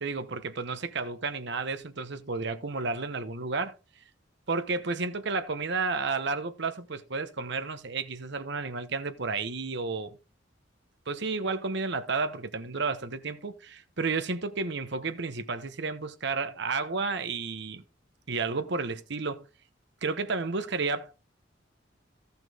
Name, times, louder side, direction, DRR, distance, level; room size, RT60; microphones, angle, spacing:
voice 1, 0.0-3.8 4.5-10.1 11.1-17.8 18.3-19.5 20.0-21.1, right 4 dB, 65° right, 1.0 m, -32 dB
15.0 x 5.9 x 3.6 m
head